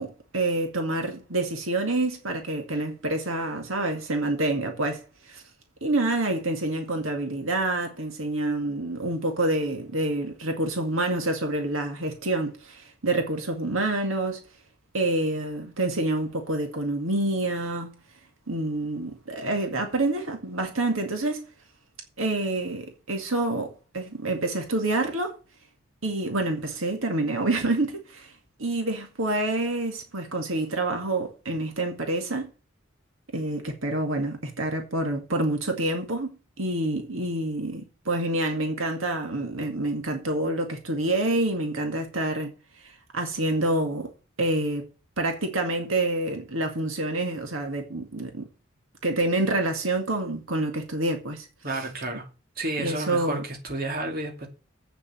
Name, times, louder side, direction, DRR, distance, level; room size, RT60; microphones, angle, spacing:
voice 1, 0.0-5.4 5.8-14.4 14.9-17.9 18.5-21.5 22.2-25.4 26.0-28.3 28.6-32.5 33.3-36.3 36.6-42.5 42.8-44.1 44.4-44.9 45.2-48.5 49.0-51.8 52.8-53.4, right 2 dB, 70° right, 2.0 m, -27 dB
voice 2, 51.6-52.3 52.6-54.5, right 2 dB, 45° right, 2.4 m, -31 dB
8.4 x 7.3 x 7.7 m
head